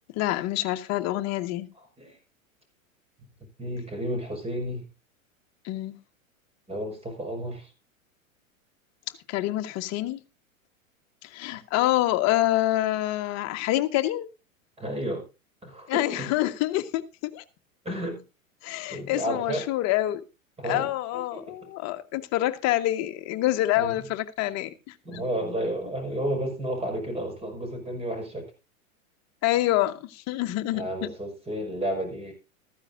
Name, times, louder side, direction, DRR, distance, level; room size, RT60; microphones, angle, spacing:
voice 1, 0.1-1.7 5.6-6.0 9.3-10.2 11.2-14.3 15.9-17.4 18.6-20.2 20.6-24.9 29.4-30.8, left 15 dB, 40° left, 1.5 m, -26 dB
voice 2, 3.6-4.9 6.7-7.7 14.8-15.2 15.6-16.3 17.8-18.2 18.9-19.7 20.6-20.9 21.3-21.5 23.8-23.9 25.0-28.5 30.7-32.3, right 1 dB, 15° right, 5.7 m, -32 dB
14.5 x 14.0 x 2.6 m
hypercardioid pair, 100°, 41 cm